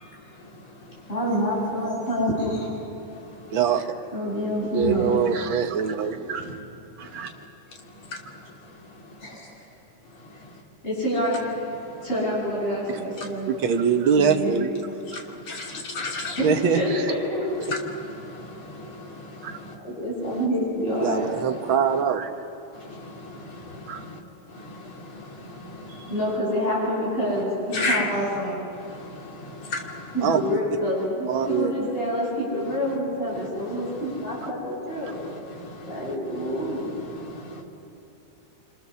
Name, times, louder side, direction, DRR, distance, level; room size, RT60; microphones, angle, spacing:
voice 1, 1.1-2.7 4.1-5.2 6.4-6.6 9.2-9.6 10.8-11.7 12.0-13.5 14.1-14.6 16.4-17.5 19.8-21.2 25.9-28.7 30.1-35.2 35.8-36.9, equal, 15° left, -6 dB, 8.2 m, -27 dB
voice 2, 3.5-3.9 4.7-6.6 7.0-7.3 13.5-14.7 15.1-15.3 16.4-16.8 19.4-19.5 21.0-22.3 23.9-24.1 30.2-30.4 31.3-31.9, right 7 dB, 55° right, 5 dB, 1.6 m, -23 dB
voice 3, 15.1-16.4 18.0-19.8 22.8-24.2 24.5-26.1 27.7-28.1 28.7-30.1 35.2-36.1 37.0-37.6, left 2 dB, 45° left, 1 dB, 3.2 m, -35 dB
26.5 x 26.5 x 7.0 m, 3.0 s
omnidirectional pair, 3.5 m